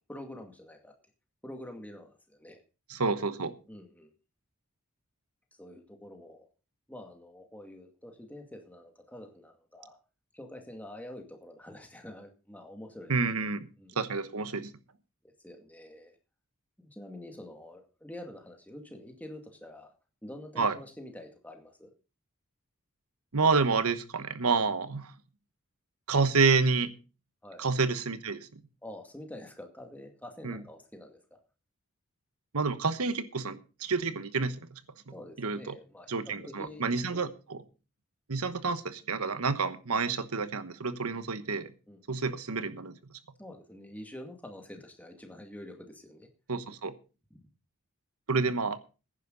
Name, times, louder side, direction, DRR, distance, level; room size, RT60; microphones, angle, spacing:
voice 1, 0.1-0.9 1.4-2.6 3.7-4.1 5.6-6.5 6.9-10.0 10.3-13.5 13.8-14.0 15.2-16.2 16.8-19.9 20.2-21.9 27.4-27.6 28.8-31.4 35.1-37.2 41.9-42.0 43.4-46.3 47.3-47.4, left 1 dB, 5° left, 3 dB, 2.1 m, -47 dB
voice 2, 2.9-3.5 13.1-13.7 14.0-14.7 20.6-20.8 23.3-25.1 26.1-26.9 27.6-28.6 30.4-30.6 32.5-34.6 35.4-35.8 36.1-37.6 38.3-41.7 42.1-42.9 46.5-46.9 48.3-48.8, right 4 dB, 85° right, 12 dB, 1.2 m, -29 dB
15.5 x 10.5 x 4.0 m, 0.33 s
head